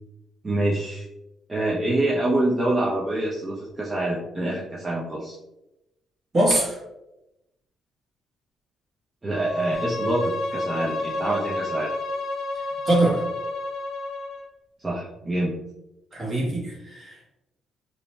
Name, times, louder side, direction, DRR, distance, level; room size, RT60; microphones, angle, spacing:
voice 1, 0.4-1.1 1.5-5.4 9.2-11.9 14.8-15.5, right 1 dB, 25° right, -5 dB, 0.5 m, -26 dB
voice 2, 6.3-6.8 12.8-13.2 16.1-17.3, right 1 dB, 40° right, -3 dB, 1.2 m, -23 dB
Bowed string instrument, 9.3-14.5, left 2 dB, 80° left, 0.4 m, -30 dB
2.6 x 2.1 x 3.0 m, 0.93 s
cardioid pair, 90°, 0 cm